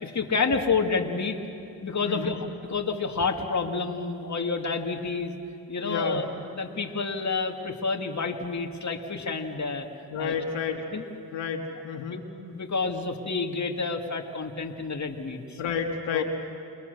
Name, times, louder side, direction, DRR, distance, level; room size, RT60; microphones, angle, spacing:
voice 1, 0.0-1.4 1.8-2.4 2.7-5.3 5.7-6.2 6.5-9.9 10.2-10.3 10.9-11.0 12.5-15.6 16.1-16.2, left 4 dB, 40° left, 3 dB, 2.3 m, -29 dB
voice 2, 5.8-6.2 10.1-10.9 11.3-12.2 15.6-16.2, left 6 dB, 85° left, 2 dB, 2.1 m, -30 dB
29.5 x 21.0 x 6.8 m, 2.6 s
cardioid pair, 60°, 44 cm